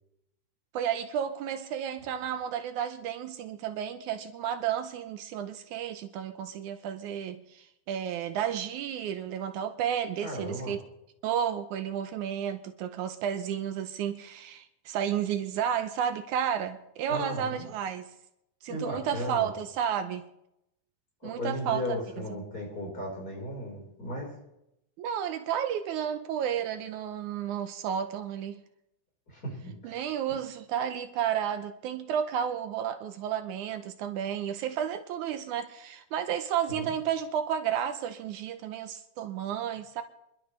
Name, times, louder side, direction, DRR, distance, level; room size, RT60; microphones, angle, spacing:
voice 1, 0.7-10.8 11.2-18.1 18.6-20.3 21.2-22.2 25.0-28.6 29.8-40.0, right 9 dB, 80° right, 9 dB, 2.2 m, -32 dB
voice 2, 10.2-10.7 17.1-17.7 18.7-19.5 21.2-24.3 29.3-30.0 36.7-36.9, left 1 dB, 30° left, -3 dB, 5.3 m, -36 dB
27.5 x 11.5 x 3.4 m, 0.83 s
omnidirectional pair, 3.6 m